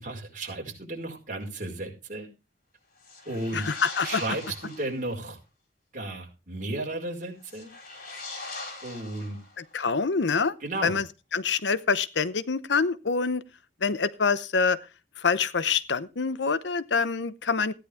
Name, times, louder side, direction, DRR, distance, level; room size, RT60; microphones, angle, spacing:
voice 1, 0.0-2.3 3.2-3.7 4.0-5.4 5.9-7.7 8.8-9.4 10.6-11.0, right 2 dB, 50° right, 5.0 m, -34 dB
sound 1, 3.0-5.0 7.4-9.7, left 3 dB, 55° left, 5.2 m, -41 dB
voice 2, 3.5-4.2 9.7-10.5 10.8-11.0 11.3-13.4 13.8-14.8 15.2-17.7, left 5 dB, 90° left, 0.8 m, -25 dB
15.5 x 10.0 x 3.5 m
head